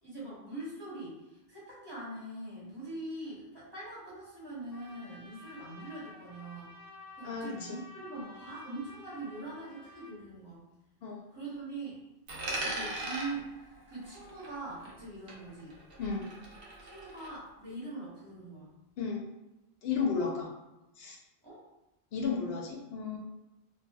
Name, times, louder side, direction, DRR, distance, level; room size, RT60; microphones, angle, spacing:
voice 1, 0.0-6.7 7.2-10.6 11.3-12.0 12.6-15.8 16.8-18.7 21.4-21.6, right 2 dB, 25° right, -8 dB, 0.8 m, -43 dB
Trumpet, 4.7-10.2, left 2 dB, 25° left, 0.5 m, -52 dB
voice 2, 7.2-7.7 11.0-11.2 16.0-16.3 19.0-19.2 19.8-20.5 21.0-21.2 22.1-23.2, left 5 dB, 70° left, -1 dB, 0.8 m, -33 dB
Coin (dropping), 12.3-15.0 15.3-17.3, right 1 dB, 65° right, 0.9 m, -40 dB
2.9 x 2.6 x 2.3 m, 0.97 s
omnidirectional pair, 1.1 m